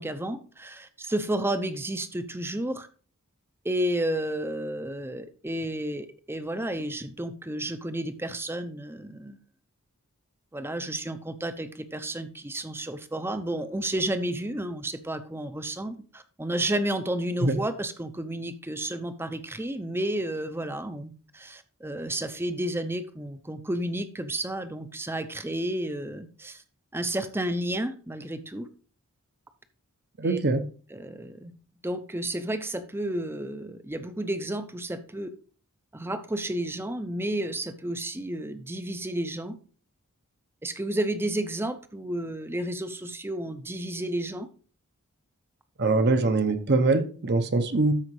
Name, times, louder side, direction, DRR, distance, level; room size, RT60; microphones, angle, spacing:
voice 1, 0.0-2.9 3.6-9.4 10.5-26.6 26.9-28.7 30.2-30.4 30.9-31.5 31.8-35.3 35.9-39.6 40.6-44.5, right 1 dB, 10° right, 0.6 m, -31 dB
voice 2, 30.2-30.6 45.8-47.9, right 3 dB, 50° right, 0.8 m, -23 dB
13.0 x 4.9 x 3.2 m
head